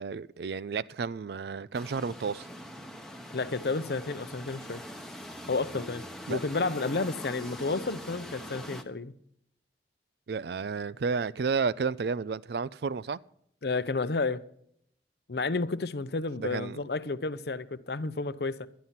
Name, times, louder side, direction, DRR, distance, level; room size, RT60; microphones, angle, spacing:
voice 1, 0.0-2.5 6.3-6.4 10.3-13.2 16.4-16.8, right 5 dB, 65° right, 0.4 m, -31 dB
sound 1, 1.7-8.8, equal, 5° left, 0.8 m, -43 dB
voice 2, 3.3-4.8 5.5-6.0 6.3-9.1 13.6-14.4 15.3-18.7, left 3 dB, 65° left, 0.6 m, -31 dB
11.5 x 11.0 x 5.7 m
head